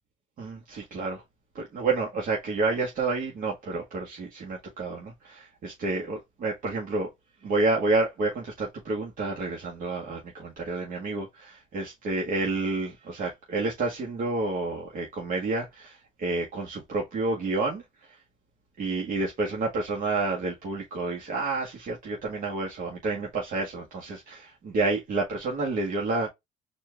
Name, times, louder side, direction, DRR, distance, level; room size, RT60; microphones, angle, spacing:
voice 1, 0.4-1.2 1.5-7.1 7.4-18.2 18.8-26.3, right 3 dB, 55° right, 1.5 m, -29 dB
4.3 x 2.6 x 3.3 m
cardioid pair, 110°, 17 cm